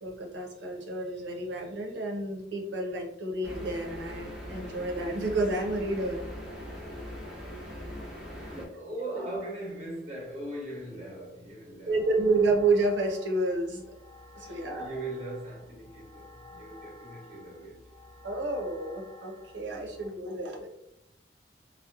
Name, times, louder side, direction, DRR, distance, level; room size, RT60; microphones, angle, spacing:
voice 1, 0.0-6.2 11.9-13.8 14.3-14.9 18.2-20.7, right 2 dB, 85° right, 0.6 m, -30 dB
sound 1, 3.4-8.7, left 1 dB, ahead, 0.5 m, -40 dB
voice 2, 7.6-7.9 8.3-12.0 14.3-17.9, right 1 dB, 35° right, 0.9 m, -40 dB
sound 2, 11.9-20.1, left 2 dB, 15° left, 1.1 m, -51 dB
2.8 x 2.0 x 2.3 m
head